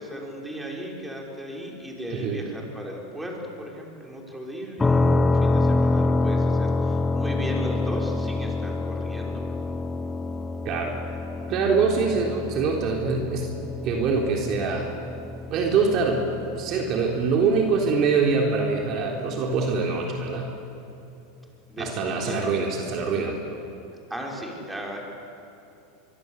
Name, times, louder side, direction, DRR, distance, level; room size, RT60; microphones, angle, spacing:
voice 1, 0.0-9.7 21.7-22.6 24.1-25.0, equal, 5° right, -1 dB, 5.7 m, -36 dB
voice 2, 2.1-2.4 10.6-11.0 11.5-13.5 13.8-14.9 15.5-16.3 16.6-20.5 21.8-23.6, right 4 dB, 45° right, 1 dB, 3.7 m, -24 dB
sound 1, 4.8-18.5, left 2 dB, 15° left, 1.0 m, -27 dB
24.0 x 24.0 x 8.3 m, 2.9 s
hypercardioid pair, 115°, 0 cm